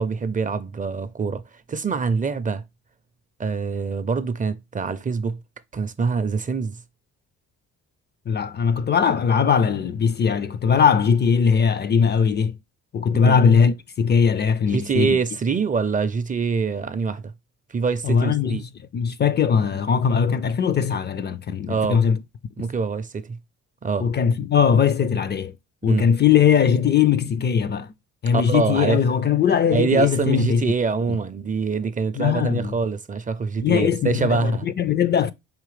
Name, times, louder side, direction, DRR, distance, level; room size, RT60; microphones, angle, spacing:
voice 1, 0.0-1.4 1.7-2.6 3.4-5.4 5.7-6.8 13.1-13.4 14.6-17.3 17.7-18.6 21.7-22.1 22.6-23.4 23.8-24.1 25.9-26.1 28.3-29.0 29.7-34.7, right 5 dB, 25° right, 0.4 m, -24 dB
voice 2, 8.3-12.6 12.9-15.2 18.0-18.6 18.9-22.2 22.6-22.7 24.0-25.5 25.8-27.9 28.2-30.6 32.2-32.7 33.6-35.3, left 7 dB, 35° left, 0.4 m, -20 dB
4.9 x 3.0 x 3.1 m
cardioid pair, 90°, 30 cm